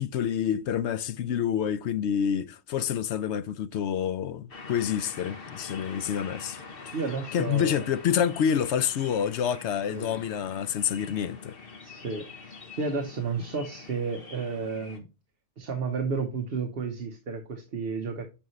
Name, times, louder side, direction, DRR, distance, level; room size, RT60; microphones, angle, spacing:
voice 1, 0.0-6.6 7.3-11.6, left 8 dB, 70° left, 0.8 m, -28 dB
sound 1, 4.5-15.0, left 4 dB, 45° left, 1.4 m, -45 dB
voice 2, 6.9-7.9 9.9-10.2 11.8-15.0 15.6-18.2, right 4 dB, 50° right, 1.2 m, -32 dB
8.8 x 5.4 x 3.1 m
omnidirectional pair, 1.3 m